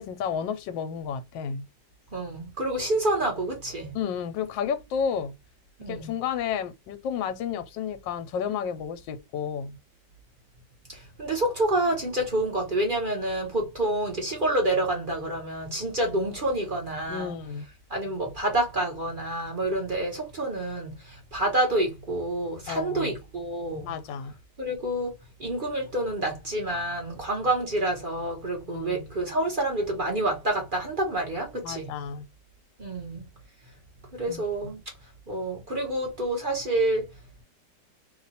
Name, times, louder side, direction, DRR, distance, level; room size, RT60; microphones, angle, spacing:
voice 1, 0.0-1.7 3.9-5.4 5.9-9.8 17.1-17.7 22.7-23.1 23.8-24.3 28.6-29.1 31.6-32.2 34.3-34.7, left 7 dB, 85° left, 1.3 m, -32 dB
voice 2, 2.1-4.0 5.8-6.1 10.9-17.3 17.9-23.9 24.6-25.1 25.4-31.9 32.8-33.3 34.1-34.8 35.3-37.1, right 1 dB, 35° right, 0.9 m, -28 dB
3.0 x 2.3 x 4.1 m
omnidirectional pair, 2.0 m